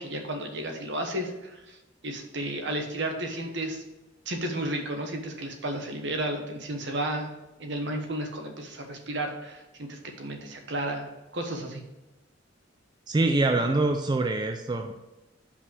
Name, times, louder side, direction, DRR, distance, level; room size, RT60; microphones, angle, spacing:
voice 1, 0.0-1.8 2.0-3.8 4.3-7.3 7.6-11.1 11.3-11.8, right 1 dB, 65° right, 4 dB, 1.2 m, -33 dB
voice 2, 13.1-14.9, right 2 dB, 25° right, 5 dB, 0.4 m, -25 dB
5.6 x 5.0 x 6.3 m, 1.0 s
head